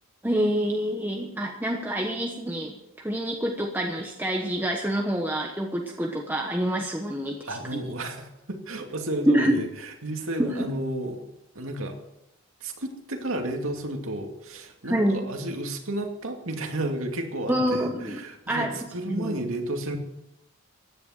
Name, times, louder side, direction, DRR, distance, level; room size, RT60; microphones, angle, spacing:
voice 1, 0.2-7.8 9.3-9.6 10.4-10.7 14.8-15.3 17.5-18.8 19.1-19.3, equal, 10° right, 0 dB, 1.1 m, -27 dB
voice 2, 7.5-11.2 11.6-12.0 12.6-20.0, right 1 dB, 70° right, 4 dB, 2.4 m, -32 dB
16.0 x 10.5 x 6.4 m, 0.88 s
head